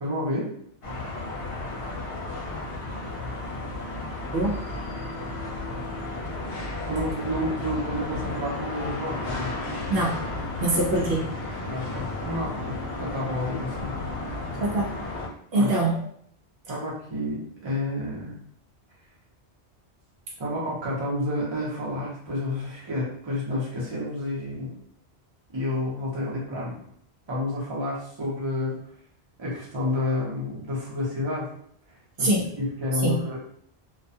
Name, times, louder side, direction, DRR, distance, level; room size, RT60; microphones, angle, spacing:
voice 1, 0.0-0.5 6.9-9.5 11.6-13.9 15.5-15.8 16.7-18.4 20.4-24.7 25.5-26.8 27.3-28.8 29.4-31.5 32.2-33.4, left 1 dB, 30° right, -5 dB, 0.7 m, -30 dB
sound 1, 0.8-15.3, left 2 dB, 70° left, 0.8 m, -33 dB
voice 2, 10.6-11.3 14.6-15.0 15.5-15.9 32.2-32.5 33.0-33.2, right 2 dB, 70° right, -3 dB, 0.8 m, -23 dB
2.3 x 2.2 x 2.6 m, 0.65 s
omnidirectional pair, 1.1 m